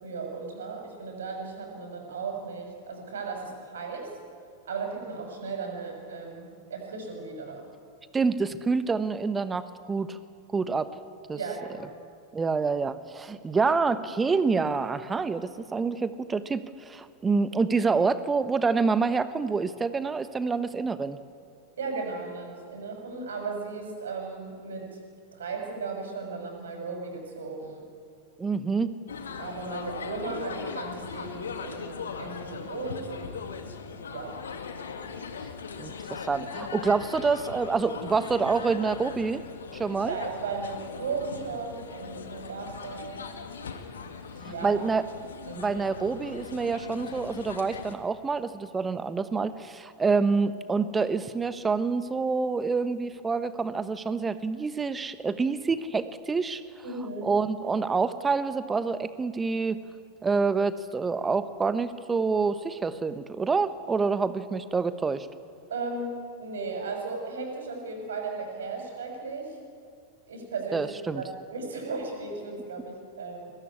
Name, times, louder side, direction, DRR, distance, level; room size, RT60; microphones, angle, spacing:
voice 1, 0.0-4.1 4.7-7.6 11.3-11.8 21.8-25.0 25.3-27.8 29.4-33.3 34.1-34.4 40.1-43.2 44.4-44.8 45.4-45.8 56.8-57.3 65.7-69.6 70.3-70.9 71.1-73.5, right 4 dB, 65° right, 3 dB, 6.3 m, -36 dB
voice 2, 8.1-10.2 10.5-10.9 11.3-11.4 12.3-21.2 28.4-28.9 35.8-39.4 39.7-40.2 44.4-45.0 45.5-56.6 57.2-59.8 60.2-65.3 70.7-71.2, right 4 dB, 15° right, 13 dB, 1.2 m, -27 dB
sound 1, 29.1-47.9, left 5 dB, 65° left, 2.1 m, -39 dB
22.5 x 19.5 x 9.8 m, 2.3 s
figure-of-eight pair, 90°, 0 cm